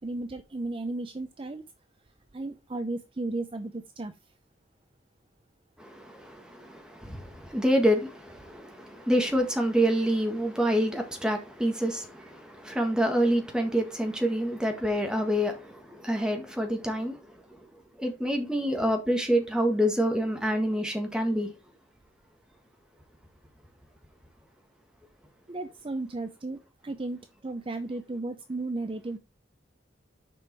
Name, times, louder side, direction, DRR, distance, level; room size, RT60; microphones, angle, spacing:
voice 1, 0.0-1.6 2.3-4.1 25.5-29.2, right 2 dB, 30° right, 0.5 m, -34 dB
voice 2, 5.8-17.2 17.5-17.6 18.0-21.5, equal, 5° right, 1.6 m, -27 dB
6.9 x 5.2 x 4.6 m
head